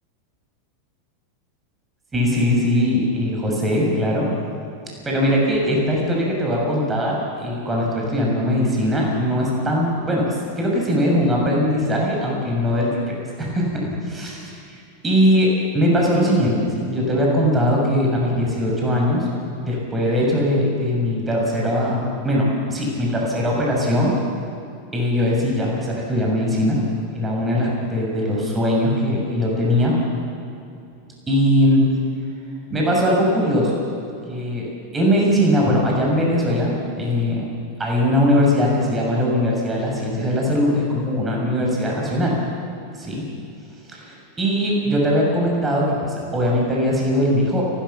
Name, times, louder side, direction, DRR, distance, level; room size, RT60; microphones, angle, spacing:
voice 1, 2.1-4.3 5.0-14.8 15.0-19.3 19.6-24.1 24.9-26.8 27.1-29.9 31.3-31.8 32.7-33.7 34.3-37.5 37.8-42.4 43.0-43.2 43.9-47.6, equal, 20° right, -2 dB, 6.7 m, -20 dB
29.5 x 13.5 x 7.3 m, 2.6 s
figure-of-eight pair, 90°, 0 cm